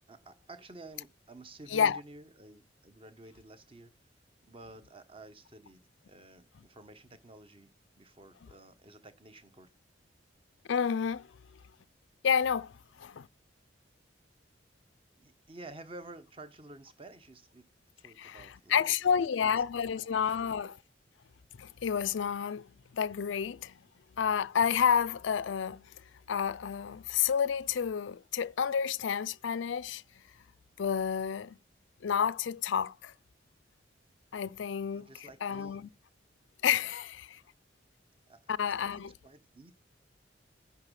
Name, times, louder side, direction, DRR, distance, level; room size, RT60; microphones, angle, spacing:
voice 1, 0.1-3.9 4.4-9.7 15.2-17.7 18.0-19.5 20.0-20.1 20.4-20.5 34.9-35.9 38.3-38.4 38.7-39.7, right 2 dB, 30° right, 1.1 m, -51 dB
voice 2, 10.7-11.3 12.2-12.7 13.0-13.3 18.2-20.7 21.6-22.6 22.9-23.8 24.2-25.9 26.3-30.0 30.8-31.6 32.0-33.1 34.3-35.1 35.4-35.9 36.6-37.4 38.5-39.1, left 7 dB, 80° left, 0.4 m, -30 dB
10.5 x 4.0 x 6.3 m
head